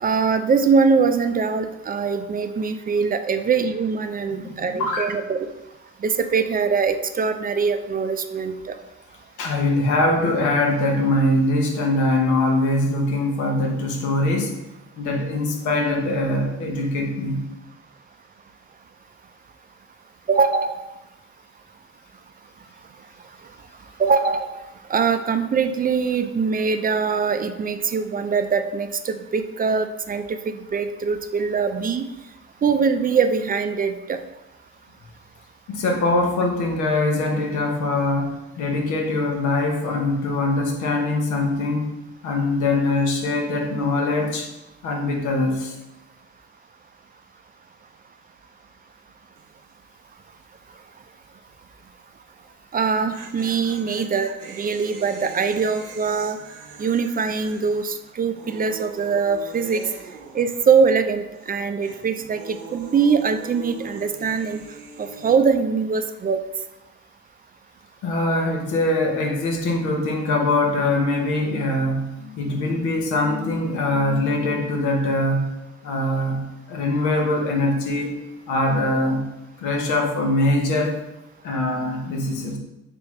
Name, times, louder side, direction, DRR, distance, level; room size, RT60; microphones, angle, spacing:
voice 1, 0.0-5.4 6.0-8.8 20.3-20.8 24.0-24.6 24.9-32.1 32.6-34.2 52.7-56.4 56.8-59.8 60.3-64.6 65.0-66.4, right 5 dB, 30° right, 9 dB, 0.4 m, -22 dB
voice 2, 4.3-5.1 9.4-14.6 15.0-17.5 35.7-41.9 42.2-44.5 44.8-45.7 68.0-75.5 75.8-79.3 79.6-81.0 81.4-82.6, left 2 dB, 85° left, 1 dB, 0.8 m, -22 dB
sound 1, 49.4-49.7 50.0-50.1 52.7-61.1 61.3-65.4, right 4 dB, 80° right, 0.6 m, -42 dB
3.4 x 3.4 x 3.1 m, 0.96 s
supercardioid pair, 60°, 29 cm